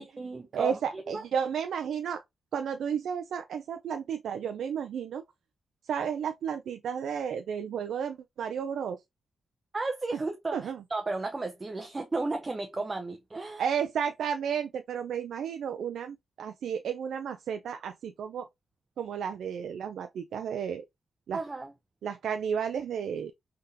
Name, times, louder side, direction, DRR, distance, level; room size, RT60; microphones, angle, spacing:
voice 1, 0.0-1.2 9.7-13.6 21.3-21.7, right 3 dB, 25° right, 0.6 m, -34 dB
voice 2, 0.5-2.2 2.5-5.2 5.8-9.0 10.5-10.8 13.6-18.5 19.0-20.8 21.3-21.4 22.0-23.3, right 7 dB, 90° right, 0.3 m, -32 dB
3.7 x 3.3 x 2.7 m
wide cardioid pair, 120°, 0 cm